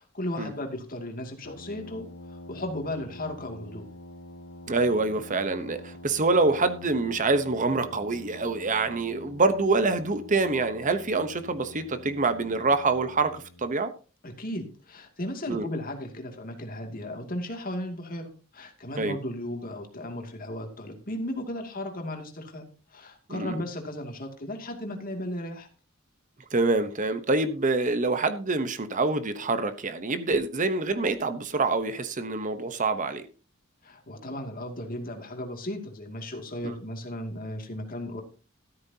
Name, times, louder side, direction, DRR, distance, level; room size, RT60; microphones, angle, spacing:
voice 1, 0.0-3.8 14.2-22.6 22.9-25.7 33.8-38.2, left 1 dB, 45° left, 2.5 m, -35 dB
Brass instrument, 1.4-13.7, left 1 dB, 65° left, 1.6 m, -46 dB
voice 2, 4.7-13.9 15.5-15.7 19.0-19.2 23.3-23.6 26.5-33.2 36.6-36.8, right 3 dB, 40° right, 1.0 m, -26 dB
13.5 x 13.0 x 2.8 m
head